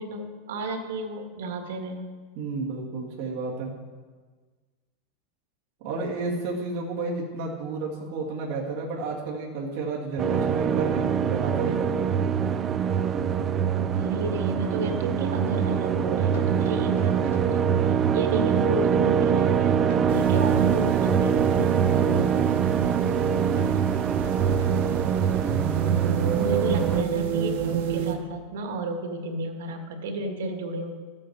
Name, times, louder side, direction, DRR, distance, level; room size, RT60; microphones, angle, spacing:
voice 1, 0.0-2.0 13.9-21.7 26.3-30.9, right 2 dB, 85° right, 4 dB, 1.9 m, -32 dB
voice 2, 2.4-3.7 5.8-12.1 21.9-22.5, right 3 dB, 50° right, -3 dB, 2.3 m, -32 dB
sound 1, 10.2-27.0, right 7 dB, 20° right, 0.4 m, -24 dB
Hammer, 16.3-17.6 19.9-21.2 23.6-24.8, left 4 dB, 85° left, 3.4 m, -49 dB
sound 2, 20.1-28.2, right 7 dB, 65° right, 1.3 m, -30 dB
14.0 x 8.7 x 4.7 m, 1.5 s
supercardioid pair, 165°, 0 cm